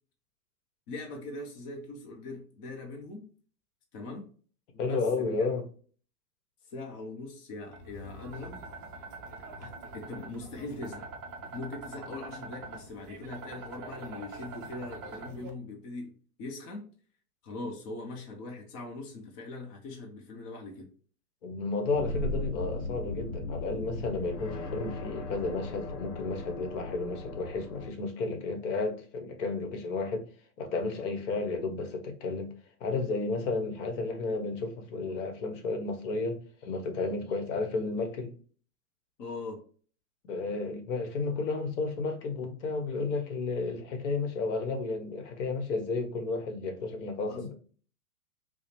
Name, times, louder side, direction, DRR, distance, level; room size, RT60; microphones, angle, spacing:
voice 1, 0.9-3.3 3.9-4.3 4.7-5.3 6.6-8.6 9.6-11.1 11.5-16.1 16.4-16.9 17.4-20.9 39.2-39.6 47.3-47.5, left 2 dB, 30° left, 0.5 m, -41 dB
voice 2, 4.8-5.6 21.4-30.3 30.6-32.5 32.8-38.3 40.3-47.5, left 3 dB, 50° left, 1.0 m, -32 dB
sound 1, 7.7-15.5, right 3 dB, 25° right, 0.4 m, -44 dB
sound 2, 21.9-27.9, left 2 dB, 90° left, 0.8 m, -37 dB
4.7 x 2.0 x 2.9 m
hypercardioid pair, 130°, 46 cm